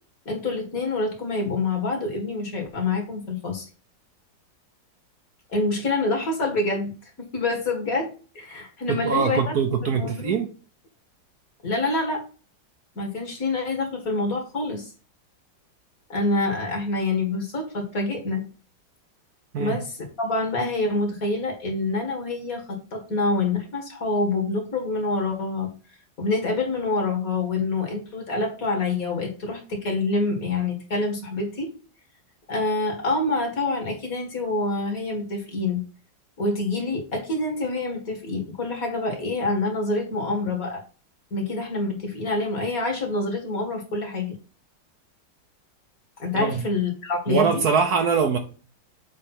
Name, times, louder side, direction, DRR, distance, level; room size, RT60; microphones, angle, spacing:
voice 1, 0.3-3.7 5.5-8.1 8.3-9.5 9.8-10.3 11.6-12.2 13.0-14.9 16.1-18.5 19.6-25.7 26.2-31.7 32.5-35.8 36.4-40.8 41.3-44.4 46.2-47.6, left 2 dB, 45° left, 2 dB, 2.3 m, -26 dB
voice 2, 8.9-10.5 19.5-19.8 46.3-46.7 47.3-48.4, right 6 dB, 60° right, 6 dB, 1.2 m, -23 dB
7.7 x 3.4 x 5.8 m, 0.37 s
omnidirectional pair, 2.0 m